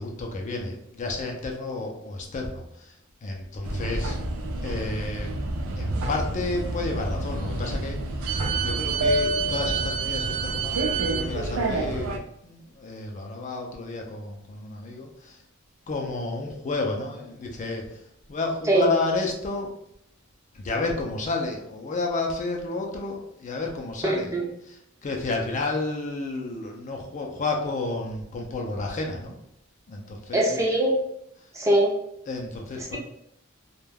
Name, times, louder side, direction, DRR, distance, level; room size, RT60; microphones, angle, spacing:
voice 1, 0.0-4.2 4.6-5.4 5.8-8.0 8.6-12.1 12.4-15.4 15.9-19.7 20.5-24.3 24.6-29.4 29.9-30.6 31.4-31.5 32.3-33.0, left 3 dB, 35° left, 1 dB, 0.4 m, -31 dB
sound 1, 3.6-12.2, right 2 dB, 80° right, 0.4 m, -28 dB
voice 2, 24.0-24.4 30.3-30.9 31.5-31.9, right 1 dB, 15° right, -2 dB, 0.5 m, -21 dB
2.2 x 2.2 x 3.3 m, 0.75 s
head